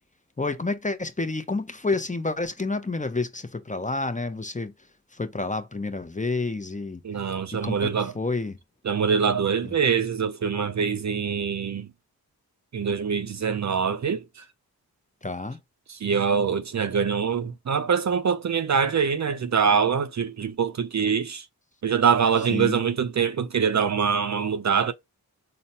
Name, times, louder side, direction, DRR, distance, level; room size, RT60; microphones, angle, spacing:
voice 1, 0.4-7.0 7.5-8.6 9.6-9.7 15.2-15.6 22.5-22.8, left 3 dB, 20° left, 0.7 m, -29 dB
voice 2, 7.0-8.1 8.9-11.9 12.7-14.2 16.0-21.4 21.8-24.9, right 6 dB, 45° right, 0.5 m, -24 dB
3.9 x 2.1 x 2.6 m
cardioid pair, 40°, 38 cm